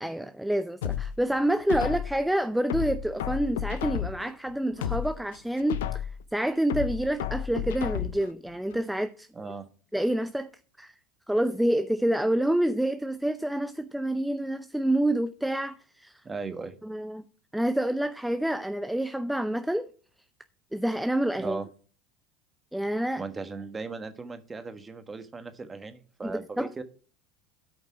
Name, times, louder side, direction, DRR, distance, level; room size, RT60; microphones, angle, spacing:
voice 1, 0.0-9.3 9.9-10.5 10.8-10.9 11.3-16.1 16.8-17.2 17.5-19.9 20.7-21.6 22.7-23.2 26.2-26.7, right 1 dB, 5° right, 0.5 m, -28 dB
sound 1, 0.8-2.2 2.7-4.3 4.7-6.2 6.7-8.3 8.7-8.8, left 10 dB, 80° left, 0.6 m, -32 dB
voice 2, 9.3-9.7 16.2-16.8 21.4-21.7 23.2-26.8, right 4 dB, 20° right, 1.4 m, -37 dB
12.5 x 5.3 x 4.7 m
hypercardioid pair, 90°, 0 cm